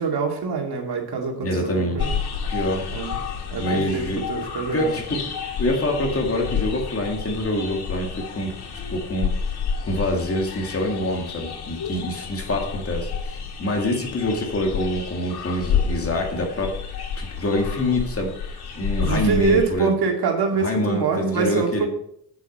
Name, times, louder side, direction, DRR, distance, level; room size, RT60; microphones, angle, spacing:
voice 1, 0.0-2.1 2.9-3.2 3.5-5.2 19.0-21.9, right 5 dB, 75° right, 2 dB, 2.4 m, -25 dB
voice 2, 1.4-2.2 2.5-2.8 3.6-4.2 4.7-5.3 5.6-8.5 8.9-9.3 9.8-16.8 17.2-18.3 18.7-19.9 20.6-21.9, left 1 dB, 35° left, 1 dB, 2.2 m, -25 dB
sound 1, 2.0-19.7, left 6 dB, 75° left, 1.9 m, -30 dB
8.5 x 8.2 x 5.5 m, 0.71 s
wide cardioid pair, 160°, 39 cm